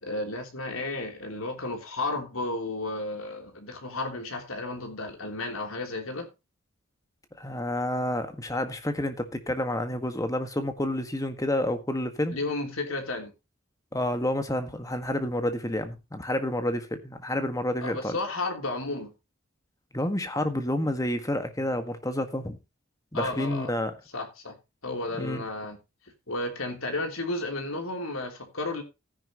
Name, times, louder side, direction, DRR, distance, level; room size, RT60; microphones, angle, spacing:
voice 1, 0.0-6.3 12.3-13.3 17.8-19.1 23.1-23.7 24.1-24.5 24.8-25.8 26.3-28.8, left 2 dB, 80° left, 3.4 m, -33 dB
voice 2, 7.3-12.4 13.9-18.2 19.9-22.6 23.1-24.0 25.2-25.4, left 1 dB, 15° left, 1.6 m, -29 dB
13.5 x 10.5 x 3.0 m
head